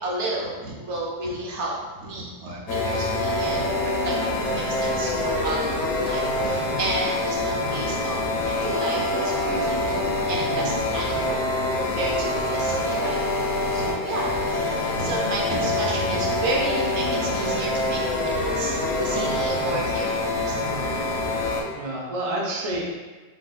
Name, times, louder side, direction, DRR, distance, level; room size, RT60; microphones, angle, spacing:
voice 1, 0.0-4.1 4.5-11.4 11.8-13.2 13.7-20.9, right 2 dB, 90° right, -3 dB, 1.0 m, -32 dB
sound 1, 2.7-21.6, left 2 dB, 80° left, 0.9 m, -25 dB
voice 2, 21.7-22.8, right 1 dB, 45° right, -2 dB, 0.5 m, -30 dB
3.5 x 2.6 x 2.3 m, 1.3 s
omnidirectional pair, 1.1 m